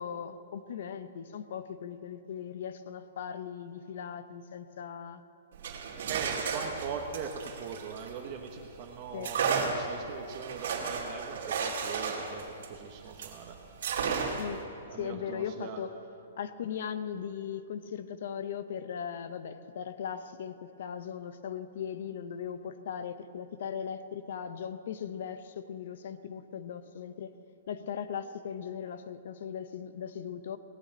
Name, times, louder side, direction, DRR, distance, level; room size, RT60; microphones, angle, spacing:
voice 1, 0.0-5.2 9.1-9.4 14.3-14.7 14.9-15.9 16.4-27.3 27.7-30.6, left 8 dB, 60° left, 12 dB, 0.7 m, -38 dB
sound 1, 5.5-8.6 9.2-13.4 13.8-14.6, right 6 dB, 70° right, 2.5 m, -33 dB
voice 2, 6.1-13.6 14.9-15.8, right 6 dB, 35° right, 2 dB, 1.0 m, -41 dB
18.5 x 6.6 x 8.8 m, 2.7 s
hypercardioid pair, 160°, 0 cm